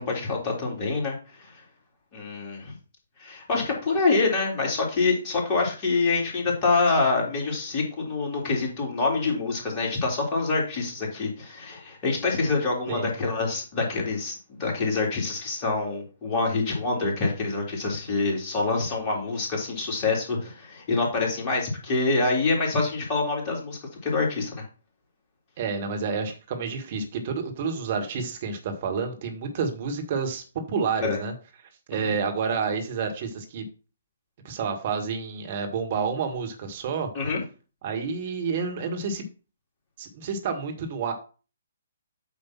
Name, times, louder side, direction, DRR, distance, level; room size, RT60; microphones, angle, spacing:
voice 1, 0.0-1.6 2.1-2.7 3.2-24.6 31.0-31.2 31.9-32.1 37.1-37.4, left 3 dB, 30° left, -1 dB, 3.0 m, -26 dB
voice 2, 25.6-31.3 31.9-33.6 34.4-37.1 37.8-39.2 40.0-41.1, right 5 dB, 45° right, 4 dB, 1.9 m, -29 dB
8.6 x 3.1 x 6.0 m, 0.35 s
figure-of-eight pair, 130°, 0 cm